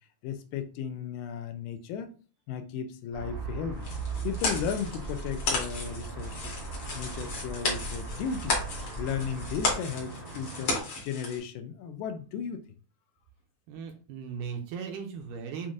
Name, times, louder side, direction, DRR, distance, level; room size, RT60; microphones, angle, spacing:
voice 1, 0.2-2.1 2.5-3.9 4.2-6.6 6.9-8.6 9.0-12.6, left 7 dB, 80° left, 2.1 m, -35 dB
sound 1, 3.1-10.8, right 4 dB, 60° right, 0.9 m, -38 dB
sound 2, 3.8-11.4, left 3 dB, 55° left, 1.6 m, -34 dB
voice 2, 13.7-15.7, right 6 dB, 80° right, 2.0 m, -37 dB
7.1 x 2.5 x 2.5 m
omnidirectional pair, 4.0 m